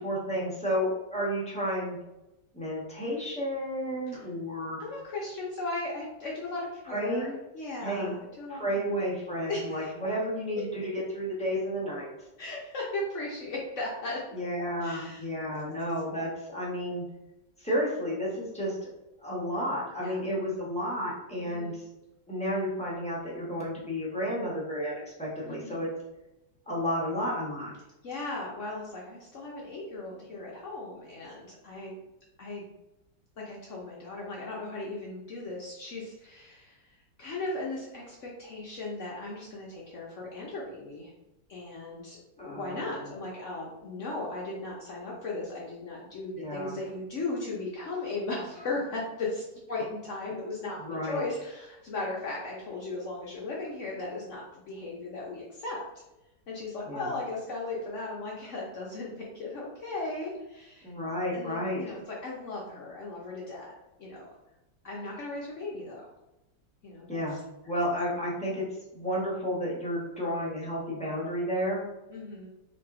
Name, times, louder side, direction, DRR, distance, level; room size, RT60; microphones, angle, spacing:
voice 1, 0.0-2.0 2.5-4.8 6.8-7.3 7.8-8.1 8.5-12.1 14.3-17.0 17.6-18.8 19.2-21.9 22.3-25.9 26.7-27.7 42.4-43.0 46.4-46.7 50.8-51.2 56.9-57.1 60.8-61.8 67.1-67.4 67.6-68.6 68.9-71.8, equal, 5° left, -7 dB, 0.6 m, -32 dB
voice 2, 4.8-8.9 9.5-9.9 12.4-14.2 14.8-15.2 20.0-20.2 21.4-21.7 25.5-25.8 28.0-31.9 32.4-32.7 33.4-41.1 41.5-55.8 56.5-60.9 61.3-63.7 64.0-64.3 64.8-66.1 66.8-67.4 72.1-72.5, left 2 dB, 65° left, -4 dB, 0.7 m, -37 dB
3.2 x 2.9 x 3.5 m, 0.94 s
omnidirectional pair, 2.0 m